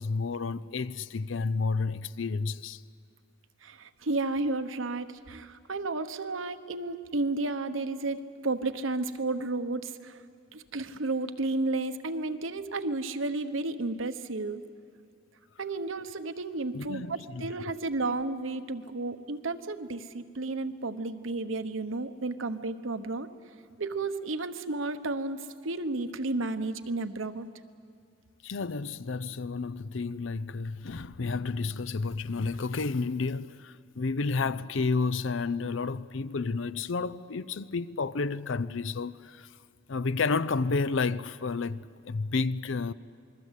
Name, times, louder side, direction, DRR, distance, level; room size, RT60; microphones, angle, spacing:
voice 1, 0.0-2.8 16.7-17.5 28.4-39.5 39.9-42.9, left 4 dB, 65° left, 0.6 m, -31 dB
voice 2, 3.6-10.2 10.5-14.6 15.6-23.3 23.8-27.5, right 2 dB, 75° right, 1.1 m, -32 dB
27.5 x 21.5 x 8.3 m
head